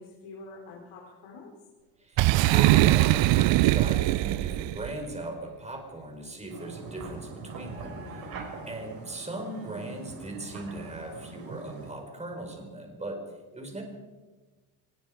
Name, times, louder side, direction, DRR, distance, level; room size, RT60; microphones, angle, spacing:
voice 1, 0.0-1.6 7.9-8.4, left 3 dB, 80° left, -2 dB, 4.7 m, -46 dB
voice 2, 2.0-8.0 8.7-13.2 13.5-13.8, right 2 dB, 15° right, 3 dB, 4.7 m, -38 dB
Boom, 2.2-4.9, right 16 dB, 65° right, 0.6 m, -21 dB
sound 1, 6.5-11.9, right 4 dB, 45° right, 5.9 m, -42 dB
24.5 x 21.0 x 5.0 m, 1.2 s
cardioid pair, 155°, 50 cm